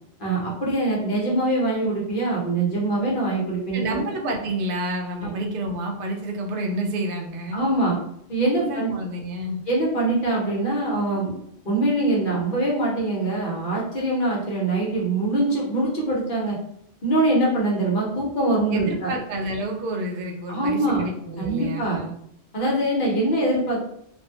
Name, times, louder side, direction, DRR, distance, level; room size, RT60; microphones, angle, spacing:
voice 1, 0.2-4.0 5.2-5.3 7.5-8.0 8.3-8.9 9.7-11.3 11.7-16.6 17.0-19.1 20.5-21.1 21.4-22.0 22.5-23.8, right 2 dB, 50° left, -4 dB, 0.9 m, -23 dB
voice 2, 3.7-7.6 8.4-9.6 18.7-22.1, right 1 dB, 60° right, 2 dB, 0.7 m, -29 dB
2.5 x 2.2 x 2.7 m, 0.72 s
omnidirectional pair, 1.2 m